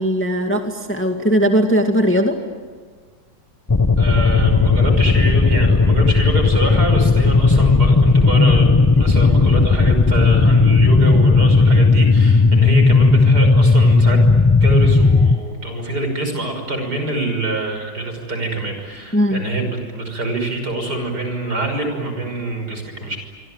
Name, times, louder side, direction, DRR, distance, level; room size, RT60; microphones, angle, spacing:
voice 1, 0.0-2.4 19.1-19.4, equal, 5° left, 4 dB, 2.1 m, -18 dB
sound 1, 3.7-15.4, left 3 dB, 30° left, 0.4 m, -14 dB
voice 2, 4.0-8.7 8.9-14.2 14.6-23.2, right 2 dB, 60° right, 5 dB, 6.4 m, -25 dB
26.0 x 25.0 x 9.0 m, 1.5 s
omnidirectional pair, 1.9 m